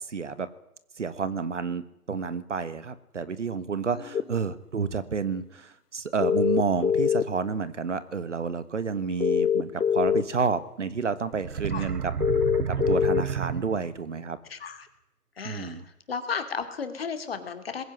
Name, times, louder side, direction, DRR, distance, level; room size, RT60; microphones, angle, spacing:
voice 1, 0.1-0.5 1.0-12.1 12.7-14.4 15.4-15.8, right 5 dB, 50° right, 14 dB, 1.5 m, -30 dB
voice 2, 3.9-4.2 11.7-11.9 14.5-14.9 15.4-15.8 16.1-17.8, left 6 dB, 40° left, 8 dB, 2.6 m, -34 dB
sound 1, 4.1-4.2 6.2-7.4 9.2-10.2 12.2-13.2, left 8 dB, 85° left, 1.2 m, -23 dB
sound 2, 11.3-14.1, right 7 dB, 75° right, 0.9 m, -31 dB
21.0 x 16.0 x 9.5 m, 0.84 s
figure-of-eight pair, 160°, 46 cm